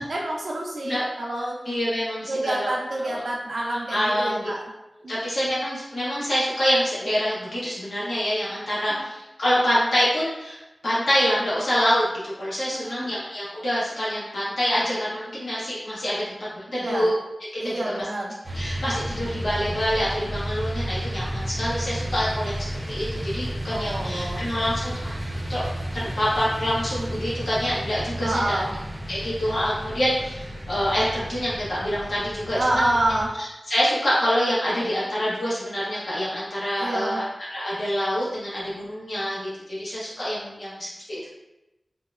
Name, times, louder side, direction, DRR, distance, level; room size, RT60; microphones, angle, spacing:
voice 1, 0.1-1.6 2.3-4.6 5.0-5.2 8.9-9.0 12.7-13.2 16.8-17.1 17.6-18.3 23.7-24.4 28.2-28.7 32.6-33.3 36.8-37.2, right 1 dB, 75° right, -3 dB, 0.5 m, -27 dB
voice 2, 1.7-2.7 3.0-3.2 3.6-4.5 5.1-16.4 16.7-17.1 17.4-18.0 18.5-25.1 25.5-25.6 25.9-28.6 29.1-32.9 33.4-41.3, equal, 75° left, -9 dB, 1.0 m, -26 dB
sound 1, 18.4-33.3, right 1 dB, 30° right, 0.6 m, -32 dB
3.6 x 2.0 x 2.4 m, 0.95 s
wide cardioid pair, 85°, 0 cm